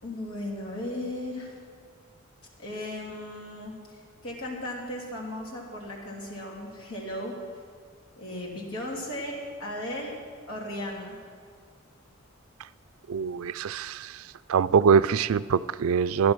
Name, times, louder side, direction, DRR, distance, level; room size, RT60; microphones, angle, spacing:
voice 1, 0.0-1.5 2.6-7.3 8.2-10.1 10.5-11.2, left 1 dB, 90° left, -2 dB, 3.3 m, -36 dB
voice 2, 13.1-14.2 14.5-16.3, right 6 dB, 80° right, 16 dB, 0.4 m, -23 dB
14.0 x 11.0 x 6.2 m, 2.1 s
head